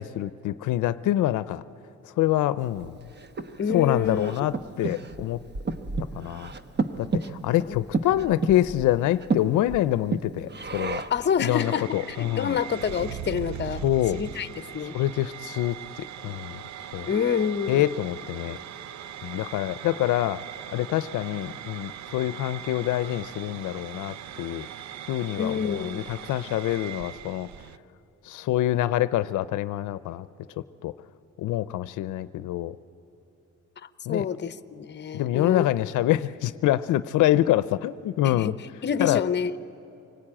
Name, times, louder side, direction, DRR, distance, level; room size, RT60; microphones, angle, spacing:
voice 1, 0.0-1.6 2.0-3.0 3.7-5.4 6.1-6.5 7.0-11.0 11.4-12.6 13.8-14.2 14.9-16.6 16.9-17.1 17.7-18.6 19.2-20.4 20.7-24.7 25.1-27.5 28.2-30.3 30.8-30.9 31.4-32.8 34.1-34.2 35.1-38.5 39.0-39.2, left 14 dB, 80° left, 14 dB, 0.6 m, -26 dB
Breathing, 2.8-11.3, right 3 dB, 35° right, 1.1 m, -32 dB
voice 2, 3.6-4.3 7.7-7.8 11.1-13.8 14.1-15.0 17.1-17.9 25.4-26.1 33.8-35.7 38.2-38.6 38.8-39.6, left 7 dB, 35° left, 13 dB, 0.8 m, -28 dB
sound 1, 11.5-27.8, right 9 dB, 70° right, 0.7 m, -40 dB
25.0 x 19.0 x 8.8 m, 3.0 s
cardioid pair, 90°, 30 cm